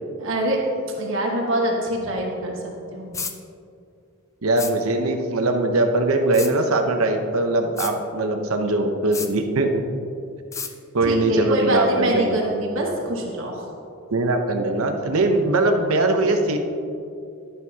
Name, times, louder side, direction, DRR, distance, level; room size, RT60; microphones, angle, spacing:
voice 1, 0.1-0.6 0.9-3.2 11.0-13.7, right 1 dB, 65° right, -1 dB, 1.3 m, -25 dB
sound 1, 3.1-3.4 4.6-4.7 6.3-6.5 7.8-7.9 9.1-9.3 10.5-10.7, left 5 dB, 15° left, 0.4 m, -30 dB
voice 2, 4.4-9.8 10.9-12.4 14.1-16.6, right 2 dB, 90° right, 5 dB, 0.9 m, -21 dB
11.0 x 11.0 x 2.8 m, 2.6 s
head